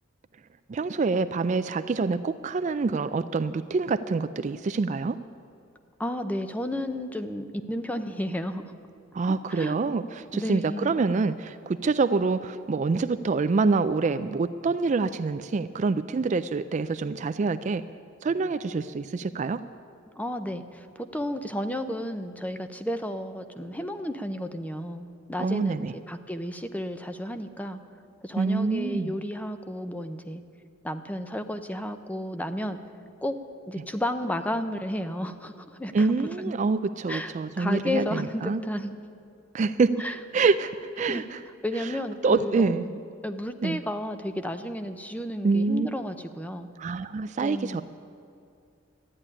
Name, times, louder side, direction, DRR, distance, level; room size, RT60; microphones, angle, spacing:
voice 1, 0.7-5.2 9.1-17.8 18.2-19.6 25.4-25.9 28.4-29.1 35.9-38.6 39.5-40.0 40.3-41.4 41.8-41.9 42.2-42.9 43.6-43.8 45.4-45.9 46.8-47.8, right 4 dB, 35° right, 12 dB, 0.3 m, -26 dB
voice 2, 6.0-8.7 9.5-9.8 10.3-11.0 20.1-27.8 28.2-30.4 30.8-32.8 33.2-33.4 33.7-36.5 37.1-38.9 40.0-40.2 41.1-41.2 41.6-46.7 47.4-47.8, left 1 dB, 10° left, 9 dB, 0.6 m, -32 dB
13.0 x 9.9 x 10.0 m, 2.4 s
head